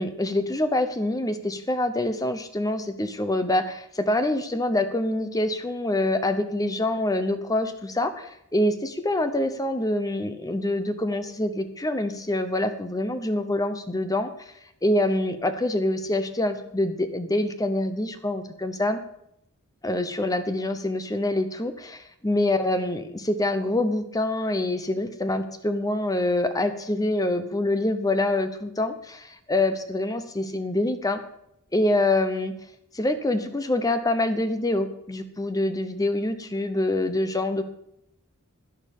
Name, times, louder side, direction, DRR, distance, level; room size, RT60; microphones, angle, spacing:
voice 1, 0.0-14.3 14.8-19.0 19.8-31.2 31.7-32.5 32.9-37.6, left 1 dB, 15° left, 9 dB, 0.8 m, -25 dB
11.0 x 10.5 x 5.4 m, 0.76 s
head